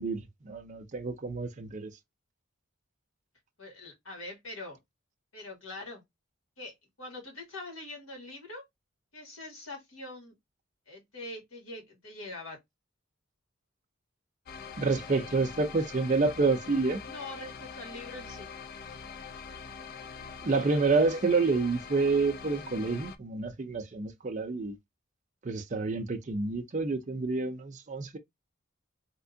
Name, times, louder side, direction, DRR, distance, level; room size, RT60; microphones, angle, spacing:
voice 1, 0.0-1.9 14.8-17.0 20.4-24.8 25.4-28.2, right 3 dB, 35° right, 0.5 m, -28 dB
voice 2, 3.6-4.8 5.3-6.0 6.6-8.6 9.1-10.3 10.9-12.6 17.0-18.5, left 2 dB, 85° left, 2.1 m, -43 dB
sound 1, 14.5-23.2, left 6 dB, 45° left, 0.5 m, -44 dB
3.5 x 2.9 x 2.6 m
head